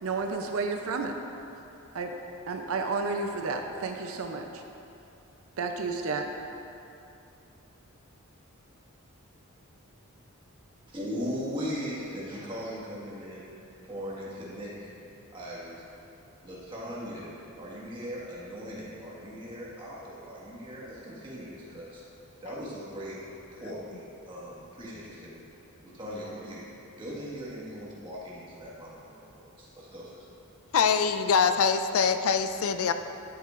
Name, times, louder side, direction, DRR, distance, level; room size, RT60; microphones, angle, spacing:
voice 1, 0.0-1.1 1.9-2.2 2.5-4.6 5.6-6.3, right 4 dB, 75° right, 4 dB, 0.6 m, -31 dB
voice 2, 10.9-13.5 13.8-14.9 15.3-15.8 16.4-22.0 22.4-23.2 23.5-25.4 25.8-26.6 27.0-30.2, equal, 25° right, -7 dB, 1.8 m, -39 dB
voice 3, 30.7-32.9, left 6 dB, 75° left, 9 dB, 0.4 m, -24 dB
11.5 x 8.2 x 2.6 m, 2.8 s
head